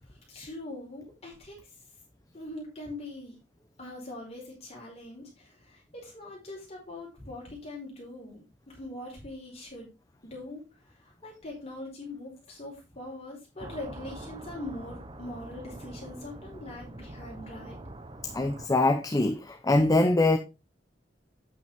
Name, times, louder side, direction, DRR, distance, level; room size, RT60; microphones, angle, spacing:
voice 1, 0.1-1.6 2.3-3.3 3.8-9.9 10.2-10.6 11.2-17.8, left 2 dB, 35° left, 4.8 m, -42 dB
sound 1, 13.6-18.7, right 1 dB, 30° right, 1.0 m, -44 dB
voice 2, 18.2-20.4, left 2 dB, 20° left, 0.8 m, -23 dB
9.2 x 8.2 x 3.6 m
head